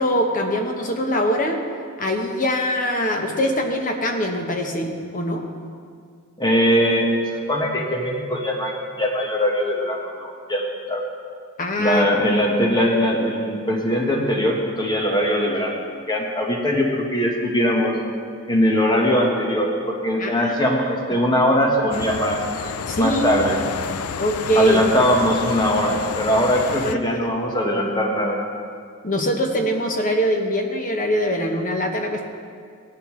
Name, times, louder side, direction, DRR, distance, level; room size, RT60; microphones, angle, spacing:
voice 1, 0.0-1.6 2.0-5.4 11.6-12.0 20.2-20.5 21.1-21.2 22.9-23.2 24.2-24.8 26.8-27.2 29.0-32.3, equal, 40° left, 3 dB, 1.1 m, -23 dB
voice 2, 6.4-8.7 9.0-11.0 11.8-15.8 16.1-17.9 18.5-22.4 23.0-23.6 24.5-28.4, equal, 20° left, -1 dB, 1.4 m, -21 dB
sound 1, 21.9-27.0, left 6 dB, 80° left, 0.5 m, -30 dB
17.0 x 11.0 x 3.2 m, 2.1 s
head